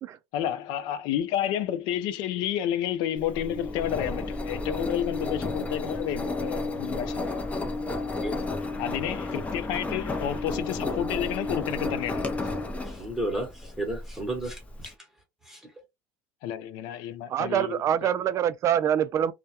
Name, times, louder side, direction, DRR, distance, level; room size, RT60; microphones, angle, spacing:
voice 1, 0.3-7.4 8.2-8.5 8.8-12.5 16.4-18.1, left 11 dB, 70° left, 0.4 m, -31 dB
Engine, 3.2-14.9, left 2 dB, 15° left, 0.5 m, -32 dB
voice 2, 12.9-14.9 15.5-15.6, right 1 dB, 5° right, 1.0 m, -33 dB
voice 3, 17.3-19.3, right 9 dB, 40° right, 0.3 m, -25 dB
2.2 x 2.1 x 2.8 m
supercardioid pair, 115°, 8 cm